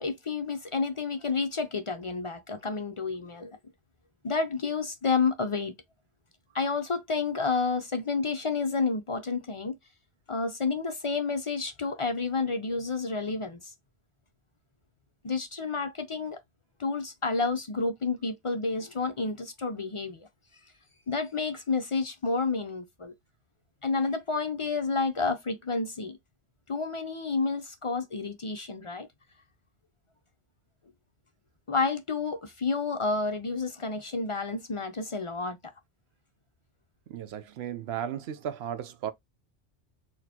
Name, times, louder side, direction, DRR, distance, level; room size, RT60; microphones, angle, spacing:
voice 1, 0.0-3.6 4.2-5.7 6.5-9.8 10.3-13.7 15.2-16.4 16.8-20.3 21.1-23.1 23.8-26.2 26.7-29.1 31.7-35.6, left 4 dB, 45° left, 0.4 m, -30 dB
voice 2, 37.1-39.1, right 9 dB, 65° right, 0.9 m, -35 dB
4.1 x 3.0 x 2.8 m
omnidirectional pair, 1.2 m